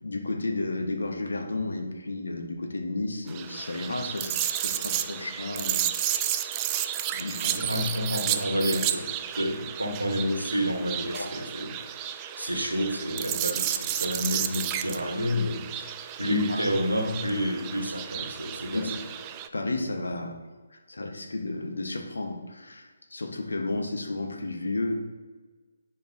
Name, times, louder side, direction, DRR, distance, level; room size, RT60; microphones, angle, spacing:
voice 1, 0.0-5.8 6.2-6.4 7.1-7.6 11.1-11.3 16.2-16.6 18.7-18.9 19.5-20.3 20.7-24.9, left 2 dB, 70° left, 4 dB, 1.1 m, -32 dB
sound 1, 3.3-19.5, right 11 dB, 20° right, 0.3 m, -32 dB
voice 2, 7.5-12.0 12.4-15.9 16.2-18.9, equal, 90° right, 2 dB, 1.1 m, -29 dB
10.5 x 4.6 x 2.7 m, 1.4 s
figure-of-eight pair, 145°, 0 cm